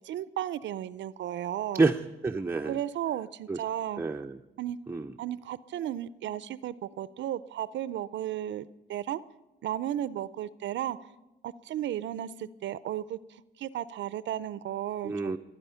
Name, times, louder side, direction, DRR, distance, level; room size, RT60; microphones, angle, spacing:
voice 1, 0.0-1.8 2.6-4.0 4.6-4.8 5.2-9.2 9.6-11.0 11.4-15.3, right 11 dB, 70° right, 18 dB, 0.5 m, -34 dB
voice 2, 1.7-2.8 3.5-3.6 4.0-4.4 4.9-5.1 15.0-15.4, right 3 dB, 10° right, 4 dB, 0.5 m, -28 dB
25.0 x 9.4 x 5.6 m, 1.0 s
cardioid pair, 90°, 20 cm